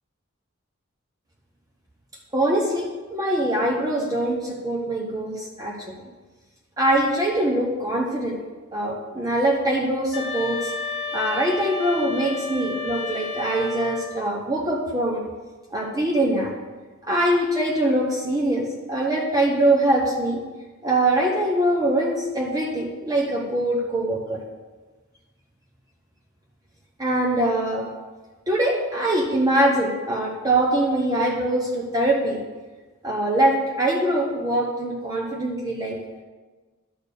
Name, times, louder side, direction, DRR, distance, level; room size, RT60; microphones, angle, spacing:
voice 1, 2.3-6.0 6.8-8.4 8.7-10.7 11.1-15.2 15.7-16.5 17.0-20.4 20.8-24.4 27.0-27.9 28.5-32.4 33.0-36.0, right 1 dB, 20° right, -2 dB, 1.0 m, -23 dB
sound 1, 10.1-14.3, left 4 dB, 55° left, 1.1 m, -32 dB
11.5 x 4.3 x 6.8 m, 1.3 s
head